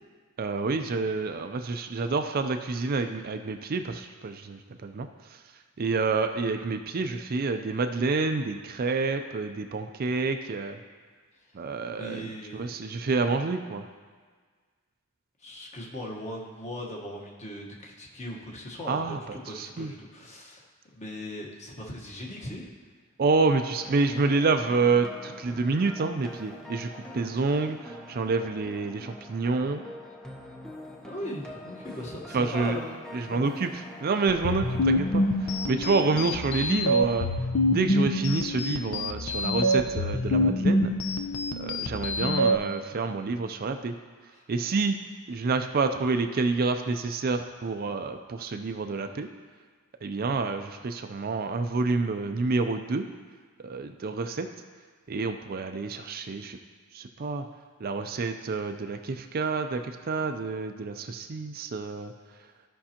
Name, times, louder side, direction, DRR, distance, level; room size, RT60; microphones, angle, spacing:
voice 1, 0.4-5.1 5.8-10.8 11.5-13.8 18.9-19.9 23.2-29.8 32.3-32.8 33.1-35.2 35.7-37.3 37.6-40.9 41.6-43.9 44.5-45.0 45.3-49.3 50.0-53.1 53.6-54.5 55.1-56.6 56.9-57.5 57.8-62.1, right 3 dB, 40° right, 6 dB, 0.4 m, -28 dB
voice 2, 11.8-13.0 15.4-20.7 20.9-22.7 31.0-33.0 33.3-33.4 44.3-44.5, left 1 dB, 30° left, -1 dB, 1.2 m, -39 dB
sound 1, 23.4-36.2, left 1 dB, 5° left, 0.6 m, -44 dB
sound 2, 34.3-42.6, left 1 dB, 70° left, 0.7 m, -26 dB
14.5 x 5.4 x 2.9 m, 1.5 s
head